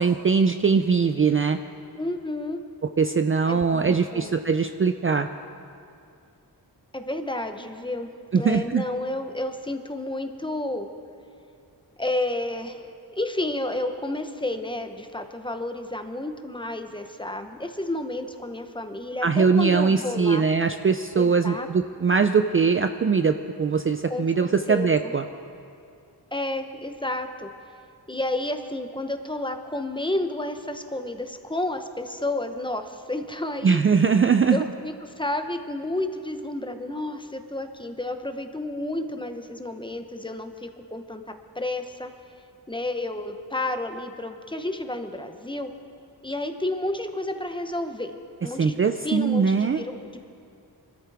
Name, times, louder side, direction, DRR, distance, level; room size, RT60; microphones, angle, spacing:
voice 1, 0.0-1.6 3.0-5.3 8.3-8.8 19.2-25.2 33.6-34.6 48.6-49.8, right 5 dB, 35° right, 8 dB, 0.4 m, -21 dB
voice 2, 1.9-2.6 3.5-4.3 6.9-10.9 12.0-20.4 21.1-21.7 24.1-24.3 24.7-25.1 26.3-27.5 28.1-33.8 34.5-41.2 41.5-42.1 42.7-45.7 46.2-48.1 48.4-50.2, left 1 dB, 10° left, 6 dB, 0.9 m, -31 dB
24.0 x 13.0 x 3.5 m, 2.4 s
wide cardioid pair, 90°, 40 cm